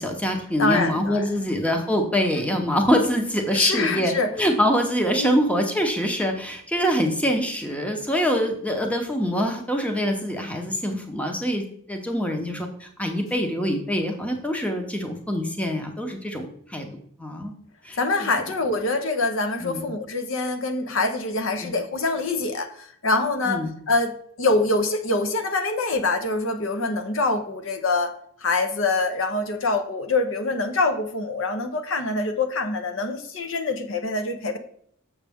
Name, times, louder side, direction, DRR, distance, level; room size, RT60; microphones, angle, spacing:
voice 1, 0.0-16.9 17.2-17.5 17.8-18.3 19.6-19.9 21.6-21.7 23.5-23.7, equal, 5° left, 4 dB, 0.7 m, -25 dB
voice 2, 0.6-1.2 3.5-4.3 5.2-5.4 18.0-24.1 24.4-28.1 28.4-34.6, left 3 dB, 65° left, 7 dB, 0.8 m, -25 dB
7.2 x 6.3 x 3.5 m, 0.65 s
head